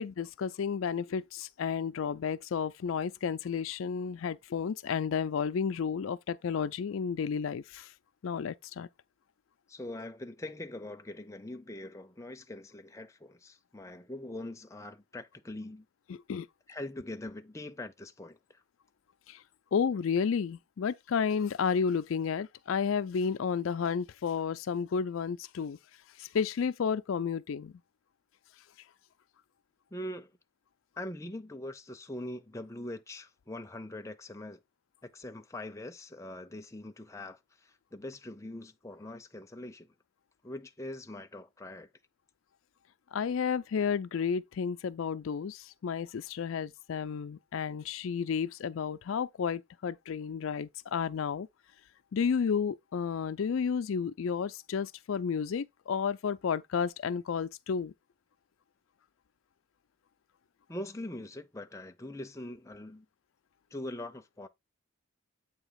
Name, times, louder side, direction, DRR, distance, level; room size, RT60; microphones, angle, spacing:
voice 1, 0.0-7.9 8.2-8.9 16.3-16.5 19.3-19.4 19.7-25.8 26.2-27.7 43.1-51.5 52.1-57.9, left 6 dB, 75° left, 0.4 m, -32 dB
voice 2, 9.7-15.9 16.7-18.6 29.9-30.3 31.0-34.6 35.0-39.9 40.4-41.9 60.7-63.1 63.7-64.5, left 1 dB, 15° left, 0.6 m, -42 dB
8.1 x 2.9 x 5.7 m
head